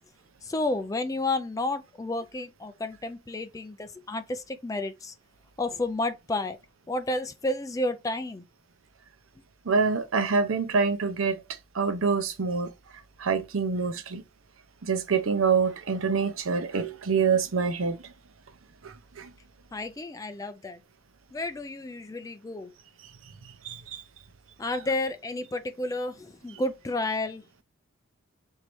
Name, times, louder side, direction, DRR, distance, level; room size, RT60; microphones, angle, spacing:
voice 1, 0.4-5.1 5.6-6.6 6.9-8.4 19.7-20.8 21.3-22.7 24.6-27.6, left 2 dB, 15° left, 0.3 m, -31 dB
voice 2, 9.7-11.4 11.7-12.7 13.2-14.2 14.8-18.0 18.8-19.3 23.6-24.0, right 5 dB, 80° right, 0.6 m, -26 dB
3.1 x 2.7 x 4.5 m
head